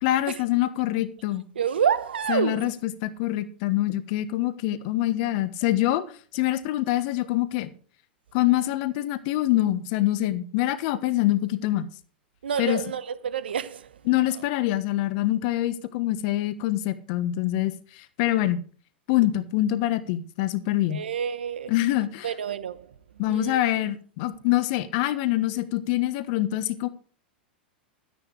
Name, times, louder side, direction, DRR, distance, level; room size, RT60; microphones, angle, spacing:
voice 1, 0.0-1.4 2.3-7.7 8.3-11.9 12.6-12.8 14.1-18.6 19.1-21.0 21.7-22.3 23.2-26.9, left 14 dB, 55° left, 1.3 m, -25 dB
voice 2, 1.5-2.7 12.4-14.4 20.9-21.7 22.2-22.9 23.3-23.8, right 8 dB, 80° right, 1.1 m, -29 dB
12.0 x 10.5 x 4.9 m
hypercardioid pair, 100°, 5 cm